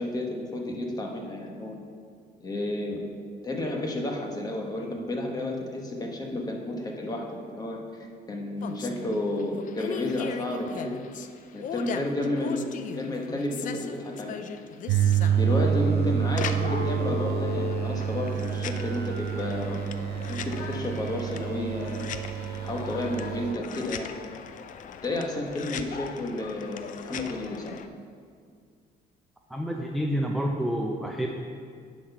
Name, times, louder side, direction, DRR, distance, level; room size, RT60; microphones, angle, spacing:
voice 1, 0.0-1.8 2.4-3.0 3.4-7.8 8.3-11.0 11.5-14.4 15.4-19.8 20.3-22.0 22.6-24.1 25.0-27.7, left 1 dB, 20° left, 0 dB, 1.2 m, -31 dB
sound 1, 8.6-27.9, left 8 dB, 50° left, 0.5 m, -38 dB
sound 2, 14.9-23.5, right 9 dB, 70° right, 0.6 m, -28 dB
voice 2, 29.5-31.3, equal, ahead, 0 dB, 0.5 m, -28 dB
9.6 x 4.1 x 5.5 m, 2.1 s
cardioid pair, 110°, 17 cm